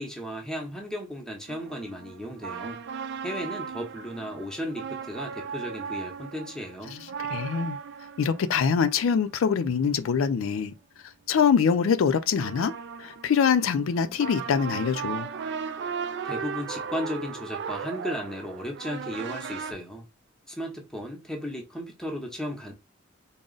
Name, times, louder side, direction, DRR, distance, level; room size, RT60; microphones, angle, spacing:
voice 1, 0.0-2.8 3.2-6.9 16.2-20.1 20.5-22.7, equal, 5° left, 0.8 m, -35 dB
sound 1, 1.5-10.1 12.1-19.7, right 6 dB, 55° right, 0.3 m, -37 dB
voice 2, 7.3-7.8 8.2-10.7 11.3-12.7 13.0-15.3, left 6 dB, 85° left, 0.4 m, -24 dB
3.7 x 2.0 x 3.8 m
head